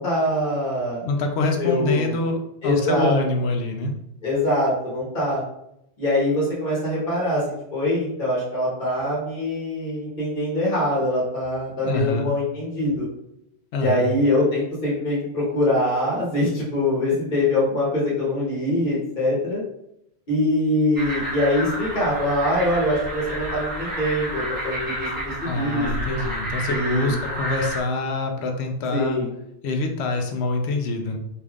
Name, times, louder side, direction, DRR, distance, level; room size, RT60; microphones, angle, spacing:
voice 1, 0.0-1.1 1.6-2.1 2.6-3.2 4.2-5.4 6.0-13.0 13.7-19.6 20.3-26.2 26.7-27.1 28.9-29.3, left 1 dB, 50° left, -6 dB, 1.2 m, -23 dB
voice 2, 1.0-3.9 11.8-12.3 13.7-14.1 25.5-29.2 29.6-31.2, left 2 dB, 75° left, 4 dB, 0.8 m, -25 dB
sound 1, 21.0-27.8, equal, 20° right, 0.9 m, -30 dB
3.4 x 2.8 x 2.3 m, 0.80 s
omnidirectional pair, 1.1 m